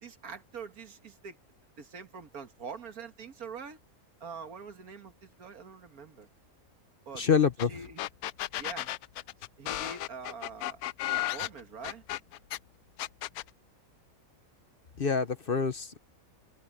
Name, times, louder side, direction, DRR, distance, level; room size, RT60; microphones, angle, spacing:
voice 1, 0.0-1.4 1.8-3.8 4.2-6.3 7.1-7.3 7.7-8.0 8.6-8.9 9.6-12.0, right 5 dB, 85° right, 2.2 m, -44 dB
voice 2, 7.1-7.8 15.0-16.0, left 6 dB, 45° left, 1.0 m, -26 dB
sound 1, 7.6-7.7 8.0-12.6 13.0-13.5, left 15 dB, 90° left, 1.1 m, -34 dB
omnidirectional pair, 1.5 m